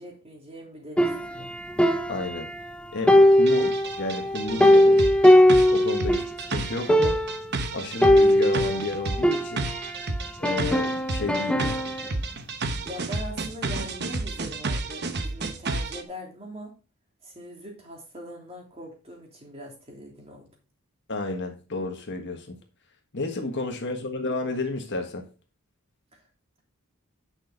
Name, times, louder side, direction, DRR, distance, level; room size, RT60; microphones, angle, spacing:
voice 1, 0.0-1.5 12.8-16.7 17.2-20.5, equal, 25° right, 3.3 m, -41 dB
sound 1, 1.0-2.7 3.1-6.4 6.6-6.7 6.9-7.5 8.0-10.0 10.4-12.1, left 1 dB, 5° left, 0.6 m, -20 dB
voice 2, 2.1-2.5 2.9-5.0 5.7-6.2 6.5-7.2 7.7-9.7 10.4-11.9 21.1-22.6 23.1-25.2, left 2 dB, 50° left, 1.6 m, -31 dB
sound 2, 3.5-16.0, right 3 dB, 50° right, 1.0 m, -31 dB
9.8 x 6.3 x 4.0 m
head